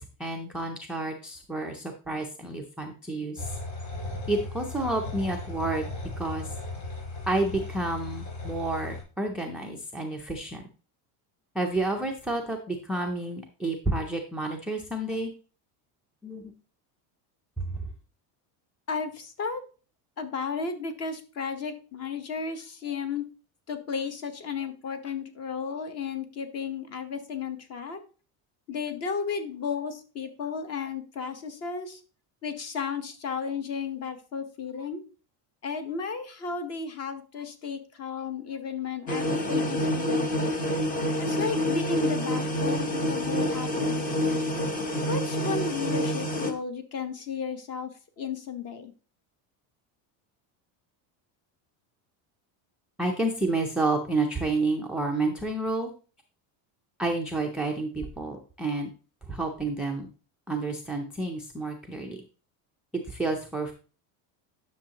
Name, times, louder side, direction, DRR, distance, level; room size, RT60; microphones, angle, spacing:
voice 1, 0.0-3.6 4.3-5.8 6.2-6.5 7.3-10.6 11.5-15.3 16.2-16.5 17.6-17.8 53.0-55.9 57.0-58.9 59.3-60.1 60.5-62.2 62.9-63.7, right 2 dB, ahead, 4 dB, 0.3 m, -30 dB
sound 1, 3.4-9.0, left 2 dB, 65° left, 3.9 m, -37 dB
voice 2, 18.9-19.6 20.2-23.2 23.7-28.0 28.7-32.0 32.4-35.0 35.6-40.5 41.2-44.5 45.1-47.9 48.2-48.9, left 5 dB, 35° left, 9 dB, 1.0 m, -34 dB
sound 2, 39.1-46.5, left 1 dB, 20° left, 0.7 m, -27 dB
10.0 x 6.4 x 2.8 m, 0.37 s
cardioid pair, 160°, 44 cm